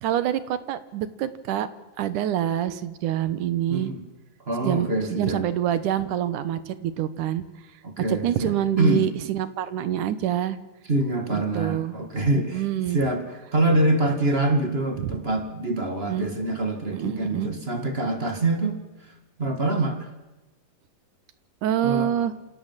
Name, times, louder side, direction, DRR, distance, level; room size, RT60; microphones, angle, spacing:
voice 1, 0.0-1.7 2.0-3.9 4.6-7.4 8.1-10.6 11.3-12.0 12.3-13.0 15.0-15.1 16.1-16.3 16.9-17.6 21.6-22.3, right 11 dB, 75° right, 14 dB, 2.6 m, -26 dB
voice 2, 4.5-5.4 7.8-9.0 10.9-12.6 12.9-13.2 13.5-18.8 19.4-20.1 21.8-22.1, right 2 dB, 20° right, 6 dB, 2.0 m, -25 dB
27.0 x 17.0 x 7.5 m, 1.1 s
omnidirectional pair, 3.7 m